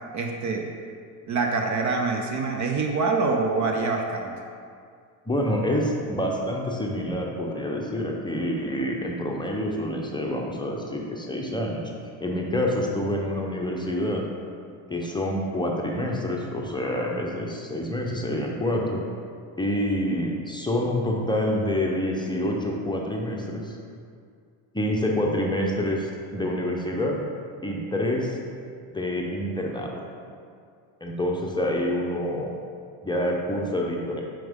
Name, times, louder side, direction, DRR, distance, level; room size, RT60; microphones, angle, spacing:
voice 1, 0.1-0.7 1.3-4.3, right 4 dB, 40° right, 3 dB, 0.6 m, -25 dB
voice 2, 5.3-11.9 12.2-14.2 14.9-19.0 19.6-23.8 24.7-27.2 27.6-28.4 28.9-30.0 31.0-32.5 33.0-34.2, left 1 dB, 10° left, -1 dB, 0.7 m, -27 dB
5.9 x 4.9 x 3.6 m, 2.2 s
supercardioid pair, 85°, 48 cm